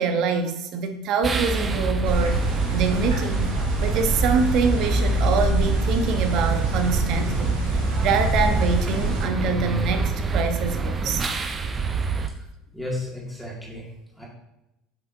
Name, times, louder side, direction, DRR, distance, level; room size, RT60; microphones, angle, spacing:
voice 1, 0.0-2.4 2.7-3.5 3.8-7.5 8.0-11.2, right 5 dB, 55° right, 7 dB, 0.9 m, -25 dB
sound 1, 1.2-12.3, right 3 dB, 30° right, 0.7 m, -25 dB
sound 2, 2.0-9.2, equal, 80° right, 2.0 m, -29 dB
voice 2, 12.7-13.9 14.2-14.3, left 2 dB, ahead, -5 dB, 2.2 m, -33 dB
9.1 x 6.0 x 2.7 m, 0.89 s
figure-of-eight pair, 65°, 0 cm